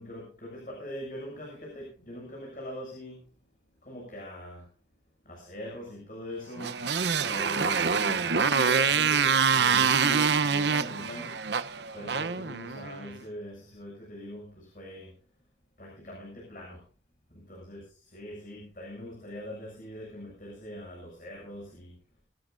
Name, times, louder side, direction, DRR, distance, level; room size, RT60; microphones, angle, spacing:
voice 1, 0.0-3.3 3.8-4.7 5.2-6.8 7.2-11.4 11.9-15.1 15.8-16.8 17.3-21.9, equal, 45° left, -1 dB, 7.4 m, -42 dB
Motorcycle, 6.6-13.1, right 6 dB, 80° right, 0.9 m, -25 dB
26.0 x 12.0 x 2.6 m, 0.37 s
head